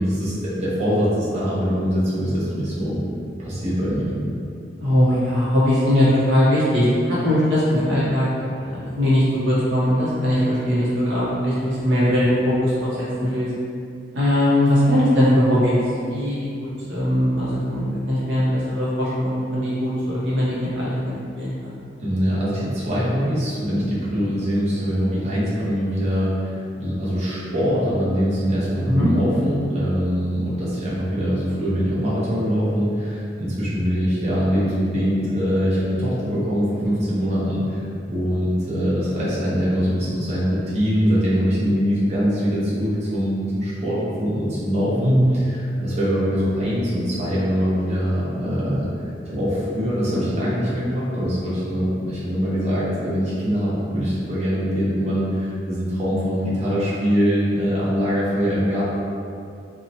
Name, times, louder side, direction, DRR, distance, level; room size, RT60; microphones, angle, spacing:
voice 1, 0.0-3.0 3.4-4.1 22.0-37.8 38.1-48.9 49.3-58.8, equal, 35° right, -9 dB, 0.7 m, -23 dB
voice 2, 4.8-12.7 13.0-13.5 14.1-21.7 28.9-29.1 45.0-45.4, equal, 70° right, -9 dB, 0.7 m, -20 dB
2.7 x 2.0 x 2.7 m, 2.4 s
head